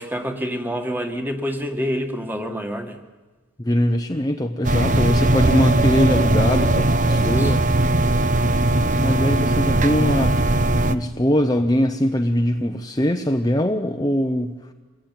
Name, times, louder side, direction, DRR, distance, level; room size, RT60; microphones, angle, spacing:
voice 1, 0.0-3.0 7.1-7.6, equal, 10° right, 5 dB, 2.0 m, -27 dB
voice 2, 3.6-7.7 9.0-10.4 10.9-14.5, equal, 20° left, 4 dB, 0.9 m, -21 dB
sound 1, 4.6-10.9, right 2 dB, 35° right, 0.9 m, -19 dB
25.5 x 20.5 x 9.3 m, 1.3 s
head